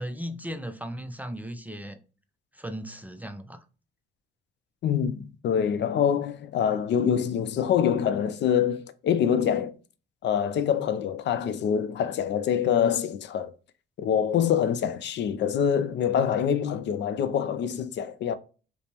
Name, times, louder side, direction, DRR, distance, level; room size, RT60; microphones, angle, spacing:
voice 1, 0.0-2.0 2.5-3.6, equal, 10° right, 0.4 m, -36 dB
voice 2, 4.8-9.7 10.2-13.5 14.0-18.4, left 8 dB, 65° left, 0.4 m, -25 dB
5.0 x 2.0 x 2.9 m
cardioid pair, 90°, 20 cm